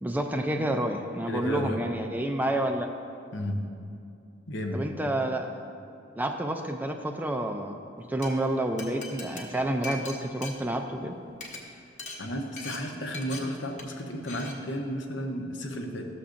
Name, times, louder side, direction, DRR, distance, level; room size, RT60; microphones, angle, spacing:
voice 1, 0.0-2.9 4.7-5.5 6.2-7.8 8.1-11.2, right 1 dB, 10° right, 5 dB, 0.3 m, -29 dB
voice 2, 1.3-1.8 3.3-3.6 4.5-4.8 12.2-16.1, equal, 75° left, 3 dB, 0.8 m, -33 dB
Glass, 8.0-8.3 8.8-11.1 11.3-11.6 12.0-12.2 12.6-12.8 13.1-13.4 13.8-14.0 14.3-14.5, left 3 dB, 40° left, 1.0 m, -40 dB
13.0 x 6.9 x 2.5 m, 2.6 s
head